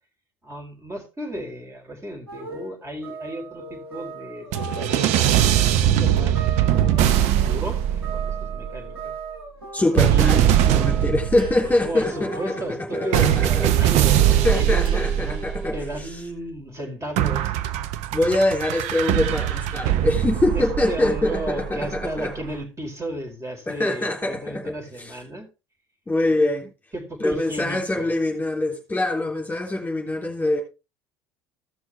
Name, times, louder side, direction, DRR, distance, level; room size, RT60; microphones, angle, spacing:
voice 1, 0.4-6.4 6.7-9.1 10.1-10.4 11.8-14.2 14.5-17.5 20.5-25.5 26.9-28.2, right 1 dB, 20° right, 4.7 m, -34 dB
sound 1, 2.3-11.7 12.1-13.4, right 3 dB, 80° right, 6.3 m, -38 dB
sound 2, 4.5-8.8 10.0-11.9 13.1-16.0 17.2-22.2, right 11 dB, 60° right, 0.9 m, -21 dB
voice 2, 9.7-12.6 12.9-13.7 14.4-16.1 18.1-22.3 23.7-25.1 26.1-26.7 27.2-30.6, left 2 dB, 10° left, 3.4 m, -24 dB
sound 3, 11.4-16.2, right 2 dB, 40° right, 2.2 m, -38 dB
16.0 x 6.2 x 3.6 m
hypercardioid pair, 65°, 13 cm